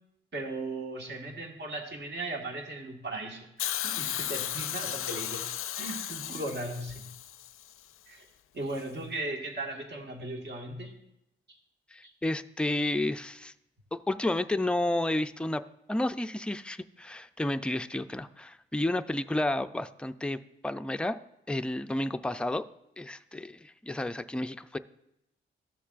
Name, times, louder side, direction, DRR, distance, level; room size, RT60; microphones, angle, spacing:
voice 1, 0.3-5.5 5.8-7.1 8.1-8.2 8.5-10.9 12.0-12.1, right 2 dB, 55° right, 1 dB, 1.8 m, -37 dB
Hiss, 3.6-7.7 8.8-8.9, left 11 dB, 85° left, 0.4 m, -35 dB
voice 2, 11.9-13.5 13.9-15.6 15.9-21.2 21.5-22.6 23.0-24.8, left 1 dB, 5° left, 9 dB, 0.4 m, -31 dB
13.5 x 6.9 x 2.5 m, 0.83 s
cardioid pair, 75°, 21 cm